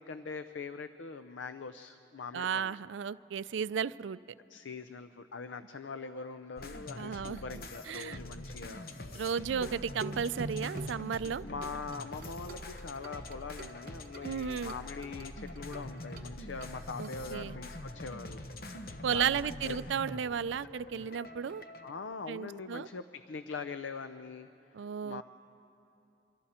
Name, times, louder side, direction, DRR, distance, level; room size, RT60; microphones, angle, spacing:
voice 1, 0.0-2.8 4.5-8.9 11.4-18.4 19.1-19.8 21.8-24.5 24.8-25.2, left 4 dB, 85° left, 10 dB, 0.6 m, -42 dB
voice 2, 2.3-4.2 7.0-7.4 7.9-8.2 9.1-11.4 14.2-14.7 17.0-17.6 19.0-21.6 22.3-22.9 24.7-25.2, right 7 dB, 85° right, 17 dB, 0.4 m, -34 dB
sound 1, 6.6-22.0, left 1 dB, 50° left, 1.0 m, -45 dB
sound 2, 9.6-17.2, right 2 dB, 50° right, 1.0 m, -45 dB
26.5 x 25.0 x 4.3 m, 2.8 s
head